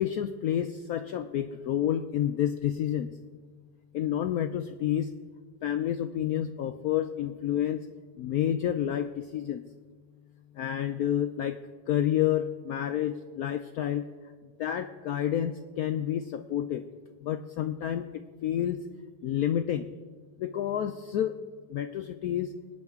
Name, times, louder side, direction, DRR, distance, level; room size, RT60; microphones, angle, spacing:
voice 1, 0.0-3.1 3.9-5.1 5.6-7.8 8.2-9.6 10.5-11.6 11.9-14.0 14.6-16.8 17.2-18.8 19.2-19.9 20.4-21.4 21.7-22.5, left 11 dB, 80° left, 8 dB, 0.8 m, -29 dB
23.5 x 9.6 x 3.6 m, 1.5 s
omnidirectional pair, 2.1 m